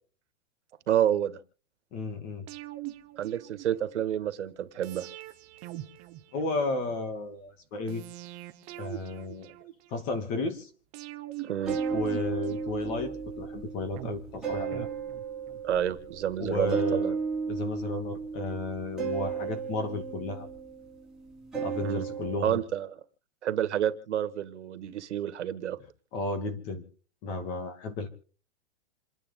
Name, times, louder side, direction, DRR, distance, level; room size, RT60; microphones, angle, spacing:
voice 1, 0.9-1.4 3.2-5.1 11.4-11.8 15.6-17.2 21.8-22.1 22.4-23.0 23.4-25.8, right 10 dB, 85° right, 10 dB, 2.1 m, -29 dB
voice 2, 1.9-2.5 6.3-8.0 8.8-9.5 9.9-10.7 11.9-14.9 16.4-17.2 17.5-20.5 21.5-22.6 26.1-26.8 27.2-28.1, left 2 dB, 25° left, 8 dB, 2.6 m, -33 dB
sound 1, 2.5-4.0 4.8-7.0 7.9-10.1 10.9-13.3 14.0-15.6 15.9-16.0, right 15 dB, 20° right, 0.9 m, -43 dB
sound 2, 11.6-22.6, right 6 dB, ahead, 3.5 m, -34 dB
28.5 x 9.9 x 3.9 m, 0.40 s
supercardioid pair, 175°, 34 cm